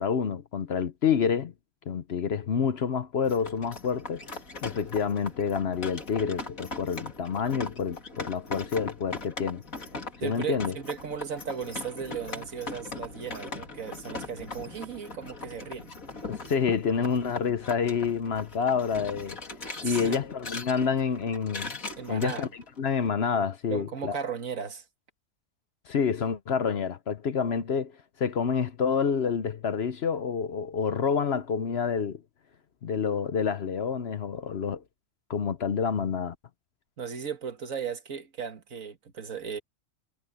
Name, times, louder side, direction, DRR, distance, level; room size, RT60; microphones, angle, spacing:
voice 1, 0.0-1.5 1.9-4.2 4.6-9.6 10.2-10.7 16.3-19.4 19.8-21.7 22.1-22.5 22.8-24.2 25.9-27.9 28.2-32.2 32.8-34.8 35.3-36.3, left 6 dB, 55° left, 1.0 m, -28 dB
sound 1, 3.2-23.0, left 3 dB, 80° left, 3.5 m, -40 dB
voice 2, 10.2-15.9 19.8-20.2 22.0-22.5 23.7-24.9 37.0-39.6, right 7 dB, 75° right, 2.0 m, -36 dB
omnidirectional pair, 1.4 m